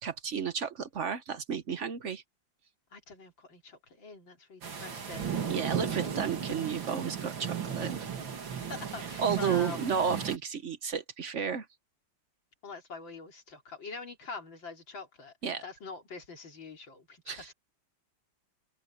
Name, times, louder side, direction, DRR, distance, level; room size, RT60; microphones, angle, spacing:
voice 1, 0.0-2.2 5.5-8.1 9.2-11.7 15.4-15.6 17.3-17.5, right 7 dB, 50° right, 1.0 m, -32 dB
voice 2, 2.9-5.4 5.7-6.2 8.7-9.8 12.6-15.3 15.6-17.5, left 4 dB, 80° left, 4.2 m, -44 dB
sound 1, 4.6-10.4, right 7 dB, 85° right, 3.0 m, -35 dB
open air
omnidirectional pair, 2.1 m